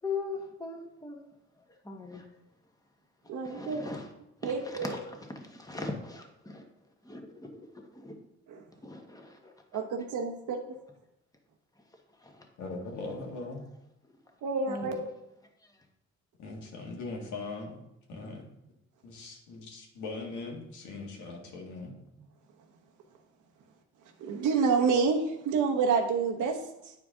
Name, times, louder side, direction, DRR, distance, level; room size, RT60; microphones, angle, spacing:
voice 1, 0.0-2.2 3.2-4.1 4.4-6.7 7.0-8.1 8.8-9.8 12.1-12.5 14.7-15.0, left 3 dB, 10° left, 2 dB, 1.3 m, -40 dB
voice 2, 3.3-3.8 4.4-4.9 8.5-8.6 9.7-10.6 14.4-15.1 24.2-26.9, right 5 dB, 80° right, 3 dB, 1.1 m, -28 dB
voice 3, 12.6-13.7 14.8-14.9 16.4-17.8 18.1-18.4 19.0-21.9, left 3 dB, 80° left, 0 dB, 1.7 m, -40 dB
9.1 x 4.7 x 3.7 m, 0.86 s
cardioid pair, 90°, 30 cm